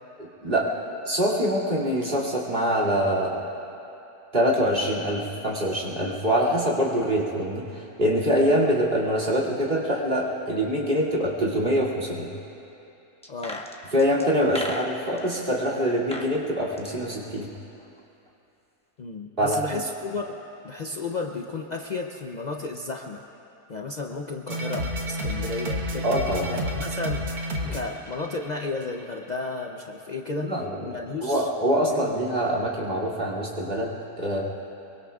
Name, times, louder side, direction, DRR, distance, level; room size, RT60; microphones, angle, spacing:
voice 1, 0.2-0.7 1.0-3.4 4.3-12.3 13.9-17.5 19.4-19.8 26.0-26.6 30.4-30.8 31.2-34.4, equal, 35° right, -3 dB, 2.7 m, -24 dB
sound 1, 13.2-15.2 15.9-16.3 16.6-18.0 18.3-18.4, left 1 dB, 5° left, 0.8 m, -37 dB
voice 2, 13.3-13.6 19.0-23.3 23.7-26.2 26.5-27.3 27.7-31.5 31.9-32.1, left 3 dB, 80° left, 2 dB, 0.4 m, -33 dB
sound 2, 24.5-28.9, equal, 70° right, 1.8 m, -30 dB
23.5 x 23.0 x 2.4 m, 2.9 s
omnidirectional pair, 1.7 m